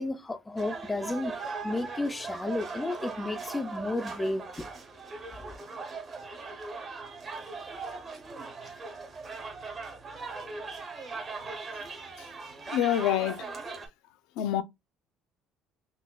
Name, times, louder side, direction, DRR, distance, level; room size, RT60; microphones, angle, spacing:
voice 1, 0.0-1.4 1.6-4.7 5.4-5.5, left 2 dB, 10° left, 0.3 m, -32 dB
sound 1, 0.6-13.9, right 4 dB, 25° right, 0.7 m, -39 dB
voice 2, 12.7-13.5 14.4-14.6, left 11 dB, 85° left, 0.4 m, -26 dB
4.0 x 2.2 x 2.2 m
cardioid pair, 160°, 0 cm